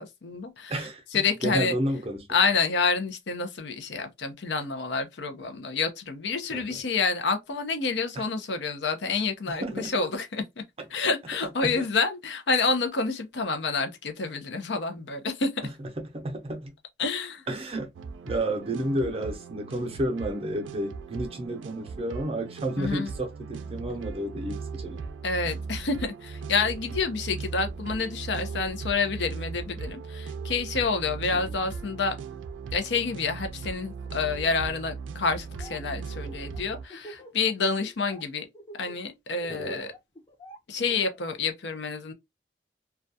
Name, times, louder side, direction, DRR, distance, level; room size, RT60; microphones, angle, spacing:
voice 1, 0.0-1.7 2.3-10.6 10.9-15.6 17.0-17.4 22.8-23.1 25.2-32.1 32.7-38.5 38.8-39.9 40.7-42.1, left 4 dB, 75° left, 0.5 m, -28 dB
voice 2, 0.7-2.3 6.5-6.8 9.5-9.9 11.6-11.8 15.8-16.7 17.5-17.9 18.2-25.0 31.3-31.5 39.5-39.9, right 1 dB, 30° right, 0.5 m, -31 dB
sound 1, 17.9-36.8, right 5 dB, 90° right, 0.3 m, -38 dB
Laughter, 35.3-35.8 36.1-37.5 37.8-38.2 38.5-41.4, right 1 dB, 25° left, 0.6 m, -46 dB
2.3 x 2.2 x 2.6 m
head